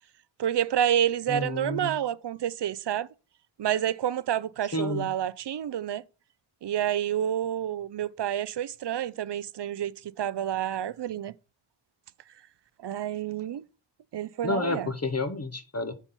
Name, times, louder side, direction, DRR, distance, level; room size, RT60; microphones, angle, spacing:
voice 1, 0.4-3.1 3.6-6.0 6.6-11.3 12.8-13.6 14.1-14.9, right 10 dB, 60° right, 0.5 m, -29 dB
voice 2, 1.3-1.9 4.7-5.1 14.4-15.9, left 2 dB, 35° left, 0.8 m, -30 dB
7.1 x 4.1 x 5.4 m
wide cardioid pair, 80°, 47 cm